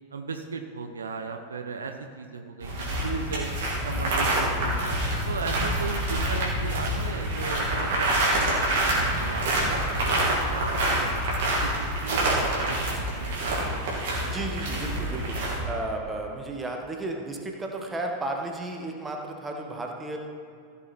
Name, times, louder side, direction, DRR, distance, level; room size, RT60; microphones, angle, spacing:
voice 1, 0.1-3.5 3.8-5.0 5.3-11.2 11.6-13.8, right 5 dB, 70° right, 6 dB, 0.7 m, -36 dB
sound 1, 2.6-15.6, right 1 dB, 55° right, 3.1 m, -26 dB
voice 2, 14.2-15.4 15.6-20.2, right 2 dB, 15° right, 1 dB, 1.6 m, -33 dB
15.0 x 7.2 x 4.4 m, 2.4 s
figure-of-eight pair, 90°, 0 cm